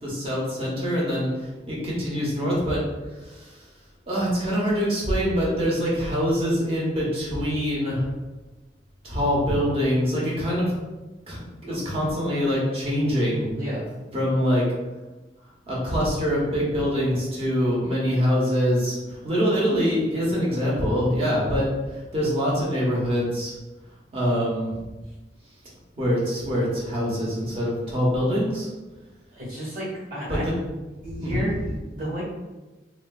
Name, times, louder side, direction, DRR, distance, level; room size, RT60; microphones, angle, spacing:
voice 1, 0.0-2.8 3.2-3.6 4.1-8.1 9.0-10.7 11.3-13.4 14.1-14.6 15.7-23.5 24.1-24.8 26.0-28.7 30.3-30.5 31.2-31.5, equal, 35° right, -5 dB, 0.9 m, -24 dB
voice 2, 13.5-13.9 29.3-30.4 31.0-32.2, equal, 50° right, -7 dB, 1.2 m, -32 dB
3.2 x 2.5 x 2.3 m, 1.1 s
head